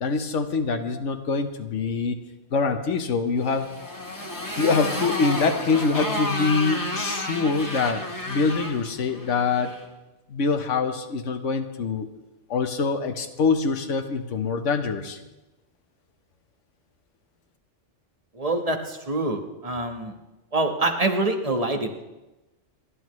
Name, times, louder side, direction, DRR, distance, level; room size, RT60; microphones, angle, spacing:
voice 1, 0.0-2.2 2.5-3.7 4.6-9.8 10.3-12.1 12.5-15.2, left 4 dB, 85° left, 7 dB, 1.3 m, -24 dB
Motorcycle, 3.4-9.8, left 1 dB, 15° left, 1.6 m, -31 dB
voice 2, 18.3-20.1 20.5-22.0, right 2 dB, 30° right, 4 dB, 1.3 m, -25 dB
28.5 x 11.5 x 3.1 m, 1.0 s
omnidirectional pair, 1.2 m